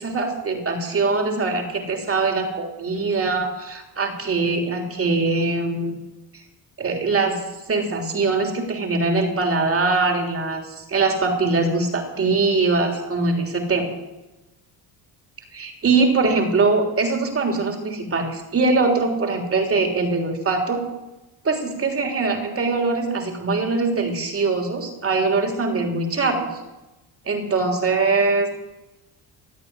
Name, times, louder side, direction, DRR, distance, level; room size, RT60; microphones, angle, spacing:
voice 1, 0.0-6.0 6.8-7.4 7.7-13.9 15.5-20.8 21.4-26.5 27.2-28.5, right 3 dB, 35° right, 3 dB, 3.4 m, -22 dB
16.0 x 8.4 x 9.7 m, 1.0 s
cardioid pair, 130°, 41 cm